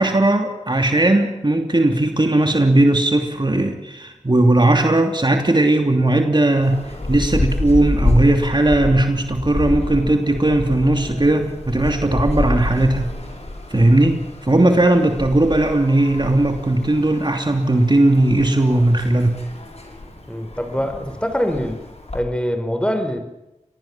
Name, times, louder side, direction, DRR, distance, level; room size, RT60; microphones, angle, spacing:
voice 1, 0.0-6.8 7.1-13.1 13.7-19.3, right 1 dB, 35° right, 4 dB, 2.9 m, -17 dB
sound 1, 6.6-22.2, left 1 dB, 55° left, 6.7 m, -28 dB
voice 2, 20.3-21.8 22.1-23.2, equal, 10° left, 8 dB, 5.0 m, -23 dB
26.5 x 20.0 x 7.4 m, 0.95 s
cardioid pair, 40°, 13 cm